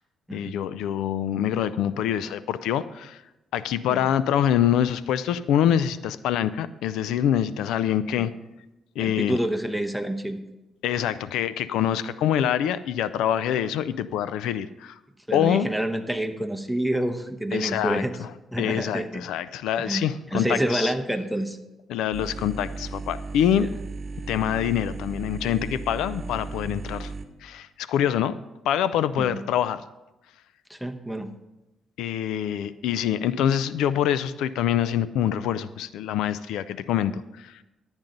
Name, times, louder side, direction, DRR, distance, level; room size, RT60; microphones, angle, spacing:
voice 1, 0.3-3.2 3.5-8.3 9.0-9.4 10.8-15.0 15.3-15.7 17.5-18.3 18.6-20.9 21.9-23.7 24.3-27.1 27.4-28.4 28.7-29.8 32.0-37.6, left 10 dB, 90° left, 15 dB, 0.4 m, -25 dB
voice 2, 9.0-10.4 15.3-18.1 18.5-19.2 19.8-21.6 29.2-29.4 30.7-31.3, right 1 dB, ahead, 8 dB, 0.9 m, -28 dB
sound 1, 22.1-27.2, right 3 dB, 40° right, 1.1 m, -35 dB
12.0 x 8.8 x 3.9 m, 0.99 s
cardioid pair, 90°, 0 cm